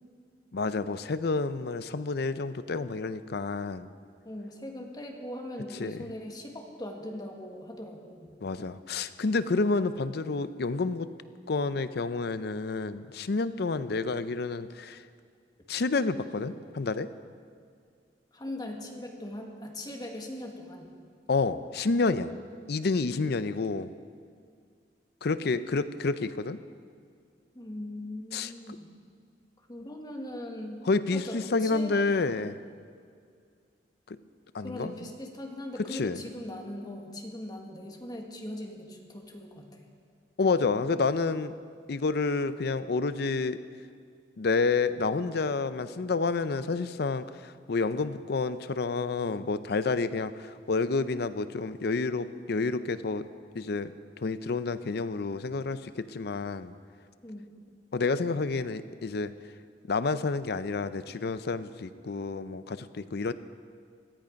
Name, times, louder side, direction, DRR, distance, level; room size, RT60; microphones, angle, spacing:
voice 1, 0.5-3.9 5.8-6.1 8.4-11.1 11.5-15.0 15.7-17.1 21.3-22.3 22.7-23.9 25.2-26.6 28.3-28.5 30.9-32.6 34.1-34.2 34.5-34.9 35.9-36.2 40.4-41.5 41.9-43.6 44.4-53.2 53.5-53.9 54.2-56.7 57.9-59.3 59.9-63.3, left 3 dB, 65° left, 13 dB, 0.5 m, -29 dB
voice 2, 4.2-8.4 18.3-20.9 27.6-28.9 29.7-30.8 31.1-32.0 34.6-39.7 57.2-57.5, left 1 dB, 25° left, 2 dB, 1.6 m, -40 dB
18.0 x 13.0 x 5.2 m, 2.2 s
head